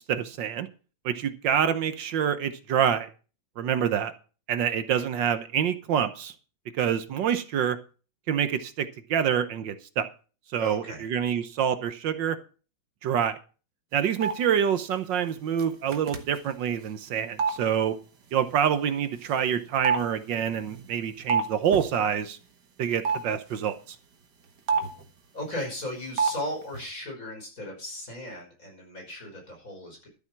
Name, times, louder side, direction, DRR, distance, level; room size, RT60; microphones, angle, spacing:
voice 1, 0.1-0.7 1.0-3.1 3.6-4.1 4.5-6.3 6.8-7.8 8.3-10.1 10.5-12.4 13.0-13.4 13.9-17.9 18.3-22.4 22.8-24.0, right 8 dB, 75° right, 10 dB, 1.6 m, -26 dB
voice 2, 10.6-11.1 25.3-30.1, left 1 dB, 45° left, 1 dB, 6.0 m, -36 dB
sound 1, 14.2-14.3 15.6-15.7 15.9-16.4 17.4-17.5 19.2-19.3 19.8-21.5 21.7-21.9 23.0-23.2 24.7-25.0 26.2-26.4 26.6-26.8, right 5 dB, 60° right, 2.1 m, -26 dB
12.5 x 7.9 x 6.0 m, 0.36 s
omnidirectional pair, 2.1 m